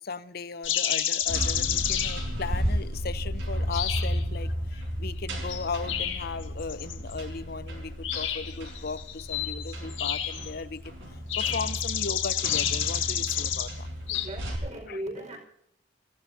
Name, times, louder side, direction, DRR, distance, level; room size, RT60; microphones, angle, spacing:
voice 1, 0.0-13.9 14.9-15.0, left 4 dB, 55° left, 13 dB, 0.8 m, -37 dB
sound 1, 0.6-2.3 3.7-4.4 5.5-7.1 8.0-10.6 11.3-13.7 14.1-14.3, left 10 dB, 90° left, 1.8 m, -30 dB
sound 2, 1.2-14.5, equal, 85° right, 5.2 m, -33 dB
voice 2, 14.1-15.4, right 1 dB, 40° right, 2 dB, 5.1 m, -38 dB
29.0 x 16.0 x 2.8 m, 0.74 s
head